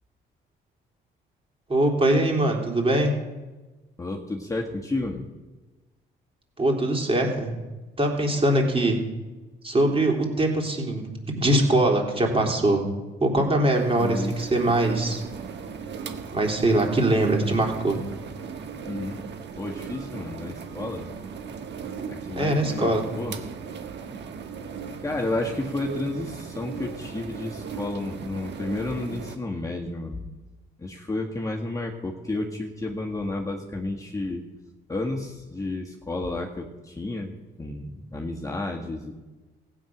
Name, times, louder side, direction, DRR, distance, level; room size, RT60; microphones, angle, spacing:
voice 1, 1.7-3.1 6.6-7.5 8.0-9.0 9.6-12.9 13.2-15.2 16.3-18.0 22.4-23.0, right 1 dB, 30° right, 1 dB, 3.3 m, -22 dB
voice 2, 4.0-5.3 14.0-14.3 18.9-19.2 19.6-21.1 22.1-23.4 25.0-30.2 30.8-34.4 34.9-37.3 37.6-39.2, left 2 dB, 15° left, 0 dB, 1.5 m, -31 dB
sound 1, 13.7-29.4, right 6 dB, 60° right, 1.4 m, -37 dB
15.5 x 9.1 x 6.1 m, 1.2 s
cardioid pair, 90°, 20 cm